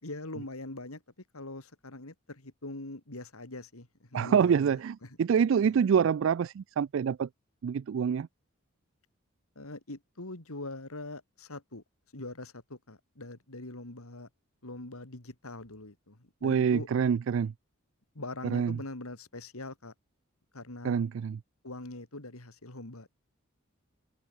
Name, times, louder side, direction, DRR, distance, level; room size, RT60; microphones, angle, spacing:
voice 1, 0.0-1.0 1.3-4.8 5.0-5.2 5.6-5.8 9.5-11.8 12.1-14.3 14.6-16.9 18.1-19.9 20.5-21.0 21.6-23.1, left 2 dB, 80° left, 2.9 m, -43 dB
voice 2, 4.1-7.3 7.6-8.3 16.4-17.5 18.5-18.8 20.8-21.4, right 7 dB, 65° right, 0.3 m, -26 dB
head